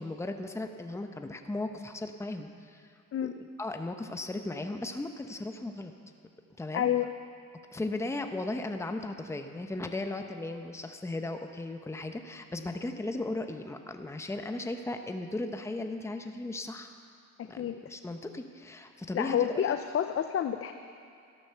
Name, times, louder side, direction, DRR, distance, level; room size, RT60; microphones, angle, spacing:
voice 1, 0.0-2.9 3.2-3.3 3.6-5.9 6.6-6.9 7.7-16.9 17.4-19.6, left 2 dB, 10° left, 6 dB, 0.8 m, -36 dB
voice 2, 6.7-7.1 17.4-17.8 19.1-20.7, left 10 dB, 45° left, 8 dB, 0.6 m, -29 dB
13.5 x 11.0 x 6.9 m, 2.4 s
cardioid pair, 105°, 32 cm